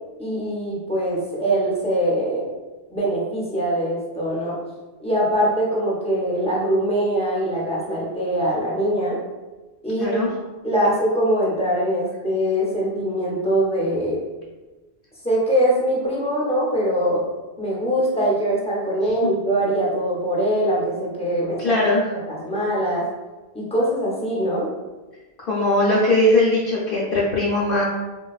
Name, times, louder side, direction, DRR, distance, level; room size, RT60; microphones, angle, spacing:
voice 1, 0.2-2.5 2.9-4.6 5.0-9.2 9.8-10.2 10.6-14.2 15.2-17.2 17.6-21.7 22.1-23.1 23.5-24.7, right 1 dB, 10° left, -5 dB, 0.5 m, -22 dB
voice 2, 21.6-22.1 25.5-27.8, left 1 dB, 65° left, -5 dB, 0.7 m, -19 dB
3.7 x 2.2 x 2.3 m, 1.2 s
omnidirectional pair, 1.0 m